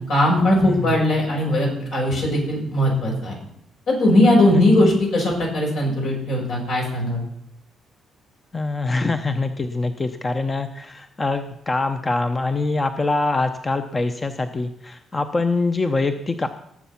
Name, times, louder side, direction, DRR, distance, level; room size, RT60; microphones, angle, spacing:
voice 1, 0.1-3.4 3.9-7.2, left 1 dB, 75° left, -2 dB, 6.9 m, -19 dB
voice 2, 0.6-1.0 4.5-4.6 8.5-16.5, left 3 dB, 25° left, 8 dB, 0.8 m, -24 dB
18.5 x 7.3 x 5.8 m, 0.73 s
cardioid pair, 90°, 0 cm